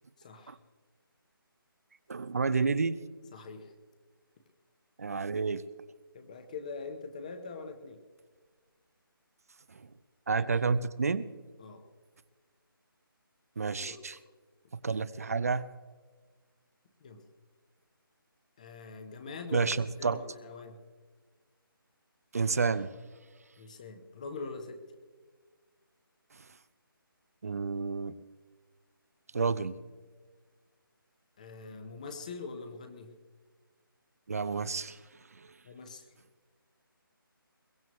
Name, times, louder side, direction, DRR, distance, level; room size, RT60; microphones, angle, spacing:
voice 1, 0.2-0.6 3.3-3.7 6.1-8.0 10.4-10.5 11.6-11.8 13.8-14.0 17.0-17.2 18.6-19.7 20.0-20.8 23.6-24.8 31.4-33.1 35.6-36.1, left 4 dB, 20° left, 8 dB, 0.9 m, -43 dB
voice 2, 2.1-3.0 5.0-5.6 10.3-11.3 13.6-14.2 14.8-15.6 19.5-20.2 22.3-22.9 27.4-28.1 29.3-29.7 34.3-35.0 35.4-35.5, right 4 dB, 40° right, 17 dB, 0.6 m, -30 dB
22.0 x 16.5 x 3.1 m, 1.5 s
hypercardioid pair, 175°, 12 cm